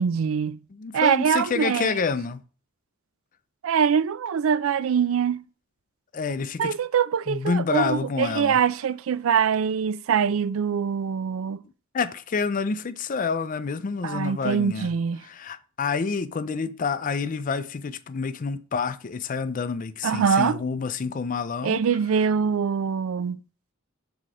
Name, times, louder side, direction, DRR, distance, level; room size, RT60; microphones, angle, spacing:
voice 1, 0.0-0.6 0.9-1.9 3.6-5.4 6.6-11.6 14.0-15.2 20.0-20.6 21.6-23.4, right 7 dB, 75° right, 0.4 m, -23 dB
voice 2, 0.7-2.4 6.1-6.7 7.3-8.6 11.9-14.9 15.2-21.8, left 5 dB, 40° left, 0.4 m, -28 dB
5.9 x 3.9 x 4.8 m
head